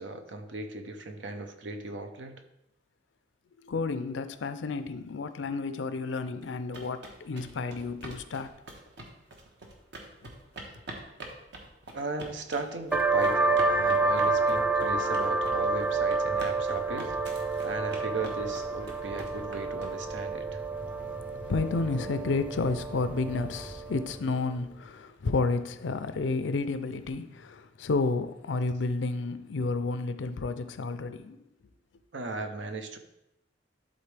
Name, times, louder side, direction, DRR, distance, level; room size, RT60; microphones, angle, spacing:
voice 1, 0.0-2.4 11.9-20.6 32.1-33.0, right 3 dB, 85° right, 0.8 m, -37 dB
voice 2, 3.6-8.5 20.8-31.4, left 3 dB, 90° left, 0.5 m, -31 dB
sound 1, 6.4-20.2, right 2 dB, 65° right, 1.2 m, -45 dB
sound 2, 12.9-24.2, right 3 dB, 10° right, 0.3 m, -29 dB
11.5 x 4.0 x 3.4 m
head